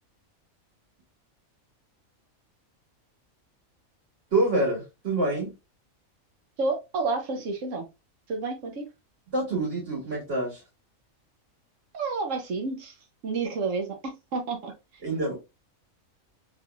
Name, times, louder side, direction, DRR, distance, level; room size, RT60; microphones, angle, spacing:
voice 1, 4.3-5.5 9.3-10.6 15.0-15.3, right 2 dB, 50° right, -5 dB, 2.2 m, -26 dB
voice 2, 6.6-7.9 8.3-8.8 11.9-13.0 13.2-14.0 14.3-15.0, right 3 dB, 70° right, 4 dB, 1.1 m, -30 dB
3.4 x 3.3 x 2.3 m, 0.25 s
omnidirectional pair, 1.4 m